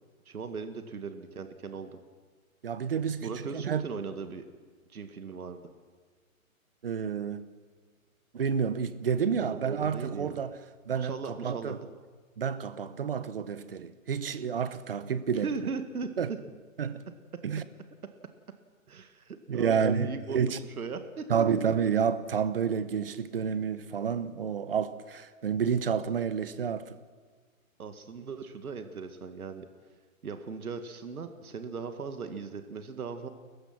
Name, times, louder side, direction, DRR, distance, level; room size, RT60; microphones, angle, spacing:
voice 1, 0.3-1.9 3.2-4.4 4.9-5.6 9.3-10.4 10.9-11.7 15.4-16.4 18.9-20.4 20.8-21.3 27.8-29.7 30.2-33.3, right 5 dB, 85° right, 2.1 m, -38 dB
voice 2, 2.6-3.8 6.8-7.4 8.3-10.6 10.9-11.8 12.4-15.5 16.2-16.3 16.8-17.0 17.4-17.6 19.5-20.6 21.3-27.0, right 7 dB, 40° right, 1.0 m, -29 dB
30.0 x 15.0 x 6.0 m
hypercardioid pair, 175°, 42 cm